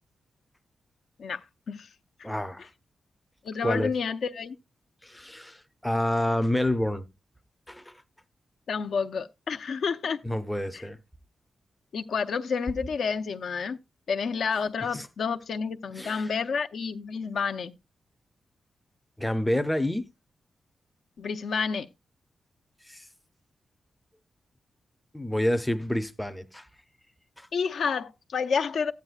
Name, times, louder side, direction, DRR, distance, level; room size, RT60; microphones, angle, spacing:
voice 1, 1.2-1.9 3.4-4.6 8.7-10.2 10.7-10.8 11.9-13.8 14.1-17.7 21.2-21.9 27.5-28.9, left 5 dB, 65° left, 0.6 m, -29 dB
voice 2, 2.2-2.7 3.6-3.9 5.0-7.1 7.7-7.9 10.2-11.0 14.9-15.1 16.0-16.3 19.2-20.1 22.9-23.0 25.1-26.7 27.4-27.5, left 1 dB, 5° left, 0.5 m, -28 dB
13.5 x 9.3 x 2.4 m
wide cardioid pair, 175°, 0 cm